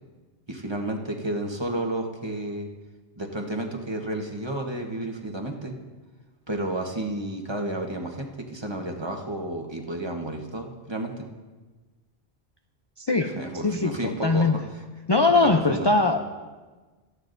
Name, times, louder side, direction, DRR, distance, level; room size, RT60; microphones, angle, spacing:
voice 1, 0.5-2.7 3.2-5.7 6.5-11.3 13.3-14.5 15.3-15.9, right 1 dB, 25° right, 2 dB, 1.2 m, -31 dB
voice 2, 13.0-13.3 13.6-14.6 15.1-16.2, left 3 dB, 35° left, 5 dB, 0.4 m, -21 dB
17.5 x 14.0 x 2.6 m, 1.3 s
omnidirectional pair, 1.1 m